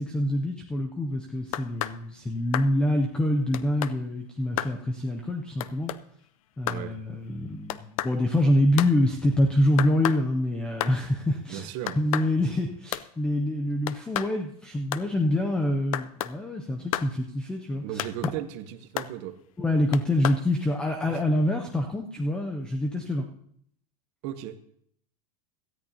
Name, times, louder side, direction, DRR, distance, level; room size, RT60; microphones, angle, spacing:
voice 1, 0.0-5.9 6.6-11.7 12.0-18.0 19.6-23.3, left 1 dB, 5° left, 4 dB, 0.4 m, -26 dB
sound 1, 1.5-2.0 2.5-2.7 3.5-4.0 4.6-4.8 5.6-6.0 6.7-6.9 7.7-8.2 8.8-9.0 9.8-10.2 10.8-11.0 11.9-12.3 12.9-13.1 13.9-14.3 14.9-15.1 15.9-16.3 16.9-17.1 18.0-18.4 19.0-19.1 19.9-20.4, left 13 dB, 60° left, 0.5 m, -31 dB
voice 2, 6.7-7.0 11.5-12.0 17.8-19.4 21.1-21.2 24.2-24.6, right 11 dB, 35° right, 10 dB, 0.8 m, -36 dB
17.5 x 13.5 x 2.7 m, 0.67 s
supercardioid pair, 175°, 20 cm